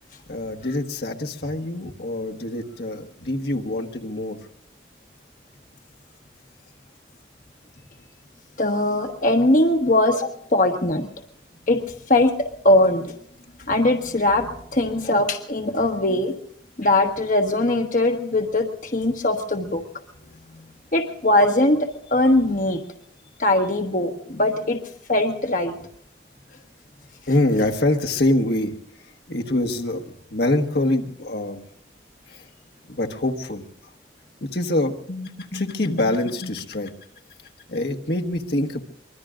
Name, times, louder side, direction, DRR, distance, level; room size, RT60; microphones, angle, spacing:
voice 1, 0.3-4.4 14.4-14.5 20.3-20.7 24.3-24.5 27.3-28.7 29.3-31.6 32.3-32.5 32.9-33.6 34.4-36.9 37.7-38.8, left 1 dB, 70° left, 4 dB, 1.4 m, -25 dB
voice 2, 8.6-11.1 11.7-11.8 12.1-13.1 13.7-16.3 16.8-19.8 20.9-22.8 23.4-24.8 25.1-25.8, left 1 dB, 50° left, 4 dB, 1.2 m, -20 dB
24.5 x 21.5 x 2.5 m, 0.68 s
head